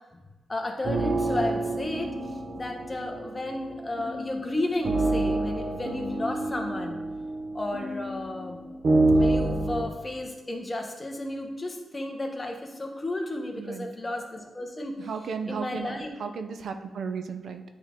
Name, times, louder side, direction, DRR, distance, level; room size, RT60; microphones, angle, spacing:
voice 1, 0.5-2.1 2.6-7.0 7.5-8.6 9.1-14.9 15.5-16.1, left 1 dB, 20° left, 2 dB, 1.0 m, -33 dB
sound 1, 0.8-9.8, right 2 dB, 55° right, 0.9 m, -28 dB
voice 2, 13.6-13.9 15.0-17.6, right 5 dB, 75° right, 7 dB, 0.5 m, -34 dB
9.8 x 3.7 x 3.6 m, 1.2 s
wide cardioid pair, 120°, 0 cm